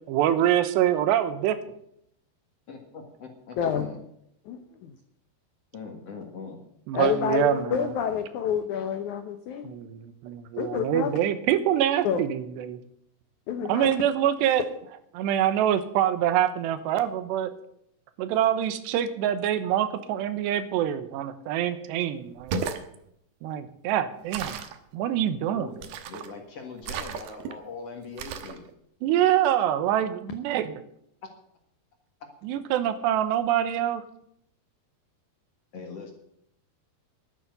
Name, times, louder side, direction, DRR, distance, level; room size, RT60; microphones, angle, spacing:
voice 1, 0.1-1.6 6.9-7.8 9.6-12.8 13.7-14.6 15.1-17.5 18.2-22.7 23.4-24.6 24.9-25.7 29.0-30.7 32.4-34.0, right 11 dB, 90° right, 11 dB, 3.2 m, -25 dB
voice 2, 2.7-4.0 5.7-6.6 25.5-28.7 31.2-31.3 35.7-36.1, left 4 dB, 50° left, 3 dB, 2.1 m, -41 dB
voice 3, 3.6-3.9 4.5-5.0 6.9-9.7 10.6-11.1 12.0-12.2 13.5-13.9, left 7 dB, 85° left, 8 dB, 1.7 m, -28 dB
sound 1, 22.3-22.9 24.3-24.8 25.8-26.3 26.8-27.5 28.2-28.6, right 6 dB, 70° right, 2.7 m, -33 dB
11.5 x 10.0 x 8.0 m, 0.74 s
omnidirectional pair, 4.8 m